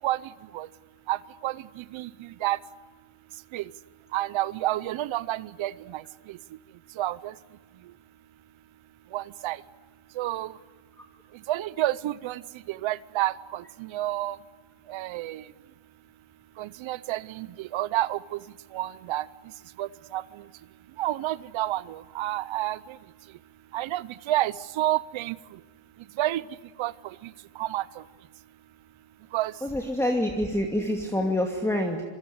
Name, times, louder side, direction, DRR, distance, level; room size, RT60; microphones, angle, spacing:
voice 1, 4.1-5.7 7.0-7.2 9.1-9.6 10.2-10.5 11.5-12.4 12.8-13.6 13.9-14.4 14.9-15.4 16.6-17.5 17.7-18.2 18.7-19.2 19.8-19.9 20.1-20.2 21.0-22.8 23.7-25.3 26.2-26.4 26.8-26.9 27.6-27.8 29.3-29.5, right 15 dB, 85° right, 18 dB, 0.8 m, -28 dB
voice 2, 29.6-32.0, left 1 dB, 5° left, 1 dB, 2.4 m, -26 dB
26.0 x 24.0 x 9.5 m, 1.3 s
cardioid pair, 120°, 46 cm